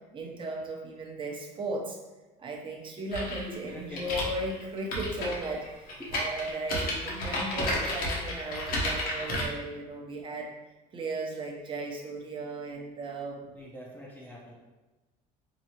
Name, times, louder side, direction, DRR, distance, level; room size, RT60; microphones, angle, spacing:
voice 1, 0.1-2.0 2.4-10.5 10.9-13.4, right 2 dB, 30° right, 0 dB, 0.7 m, -36 dB
sound 1, 3.1-9.5, left 1 dB, 60° left, 0.9 m, -32 dB
voice 2, 3.5-4.1 6.0-6.1 13.5-14.5, equal, 10° left, -5 dB, 0.6 m, -44 dB
4.7 x 2.0 x 2.8 m, 1.2 s
cardioid pair, 110°, 17 cm